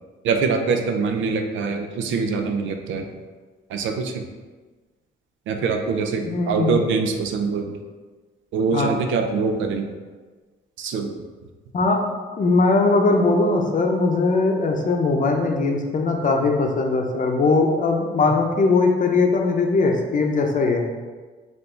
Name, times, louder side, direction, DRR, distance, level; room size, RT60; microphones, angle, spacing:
voice 1, 0.2-3.0 3.7-4.3 5.5-7.7 8.5-9.9 10.8-11.1, right 5 dB, 80° right, 5 dB, 0.5 m, -24 dB
voice 2, 6.3-6.8 8.7-8.9 11.7-12.0 12.4-20.9, left 3 dB, 40° left, 2 dB, 0.7 m, -20 dB
4.6 x 2.6 x 3.8 m, 1.4 s
cardioid pair, 90°, 20 cm